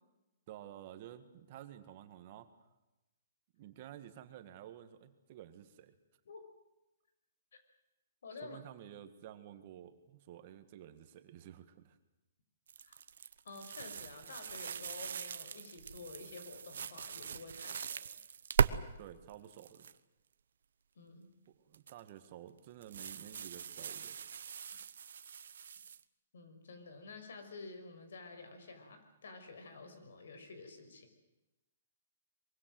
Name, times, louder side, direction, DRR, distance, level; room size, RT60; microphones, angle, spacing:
voice 1, 0.5-2.5 3.6-5.9 8.4-12.0 19.0-19.9 21.6-24.2, right 11 dB, 35° right, 9 dB, 1.8 m, -52 dB
voice 2, 8.2-8.6 12.8-13.0 13.4-18.0 21.0-21.3 26.3-31.1, left 3 dB, 75° left, 8 dB, 5.8 m, -50 dB
sound 1, 12.7-18.8 19.3-19.9 21.7-22.1 22.8-26.0, right 7 dB, 70° right, 1.0 m, -39 dB
23.5 x 23.5 x 7.9 m, 0.98 s
hypercardioid pair, 170°, 0 cm